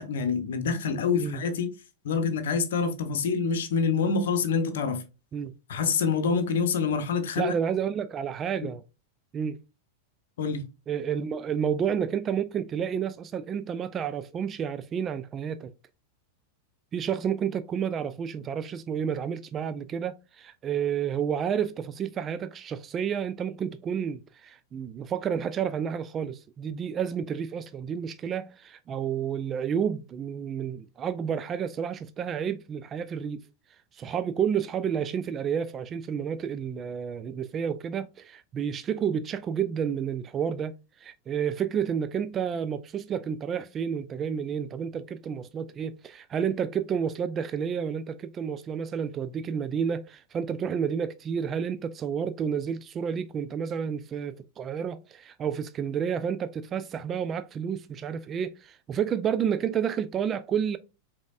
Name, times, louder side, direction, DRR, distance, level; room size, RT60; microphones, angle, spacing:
voice 1, 0.0-1.7 2.0-5.0 5.7-7.5 10.4-10.7, left 5 dB, 60° left, 0.8 m, -26 dB
voice 2, 7.4-8.8 9.3-9.6 10.9-15.7 16.9-33.4 33.9-60.8, right 7 dB, 25° right, 0.3 m, -30 dB
5.1 x 3.5 x 2.4 m
figure-of-eight pair, 90°, 0 cm